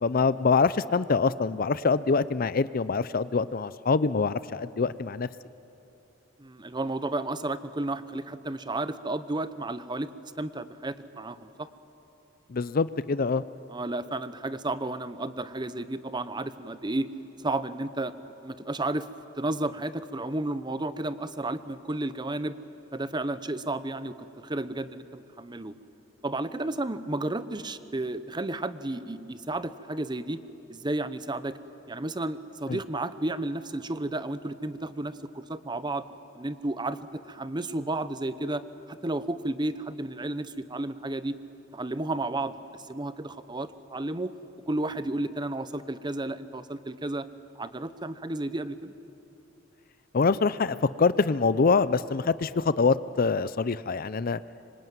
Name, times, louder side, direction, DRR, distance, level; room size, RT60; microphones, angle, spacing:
voice 1, 0.0-5.3 12.5-13.4 32.7-32.8 50.1-54.4, left 4 dB, 50° left, 16 dB, 0.5 m, -25 dB
voice 2, 6.4-11.7 13.7-17.1 17.4-19.1 19.3-22.6 22.9-25.7 26.2-30.4 30.7-31.6 31.9-36.0 36.4-37.0 37.3-38.6 38.9-41.4 41.7-42.6 42.9-44.3 44.7-47.3 47.6-48.9, right 2 dB, 25° right, 13 dB, 0.8 m, -32 dB
25.5 x 24.5 x 9.3 m, 2.9 s
head